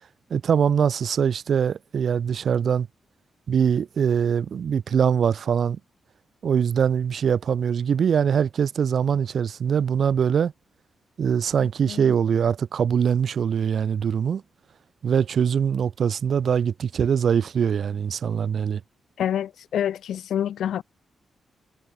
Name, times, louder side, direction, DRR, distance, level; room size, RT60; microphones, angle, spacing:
voice 1, 0.3-2.9 3.5-5.8 6.4-10.5 11.2-14.4 15.0-18.8, right 7 dB, 60° right, 2.2 m, -22 dB
voice 2, 19.2-20.8, left 10 dB, 90° left, 2.1 m, -27 dB
wide cardioid pair, 120°, 0 cm